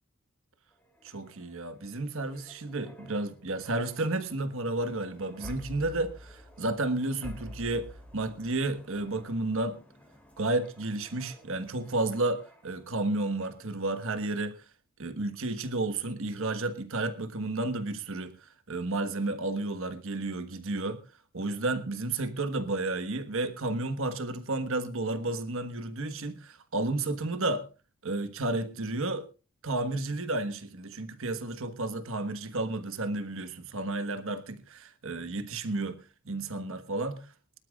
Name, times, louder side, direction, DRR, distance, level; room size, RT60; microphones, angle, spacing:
sound 1, 0.7-13.0 13.4-13.6, equal, 5° left, 3.0 m, -50 dB
voice 1, 1.0-9.8 10.4-14.6 15.0-21.0 21.3-27.7 28.0-29.3 29.6-36.0 36.2-37.2, right 2 dB, 65° right, 1.4 m, -32 dB
23.5 x 12.5 x 2.4 m
head